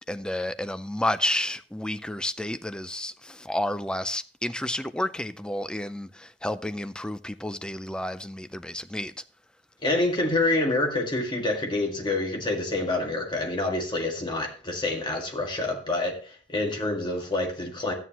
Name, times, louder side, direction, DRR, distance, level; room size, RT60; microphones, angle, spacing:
voice 1, 0.0-9.1, left 1 dB, 5° left, 0.4 m, -31 dB
voice 2, 9.8-17.9, left 2 dB, 25° left, 1.9 m, -27 dB
13.0 x 9.3 x 2.9 m
head